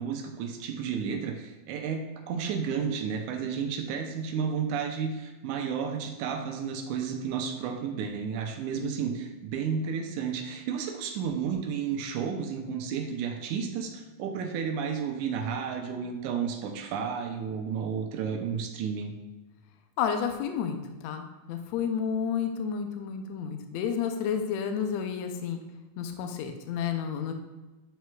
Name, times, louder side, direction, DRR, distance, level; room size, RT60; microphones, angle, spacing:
voice 1, 0.0-19.1, right 6 dB, 80° right, 4 dB, 2.1 m, -32 dB
voice 2, 20.0-25.6 26.0-27.3, left 7 dB, 80° left, 6 dB, 1.6 m, -31 dB
9.3 x 4.4 x 2.3 m, 1.1 s
omnidirectional pair, 3.5 m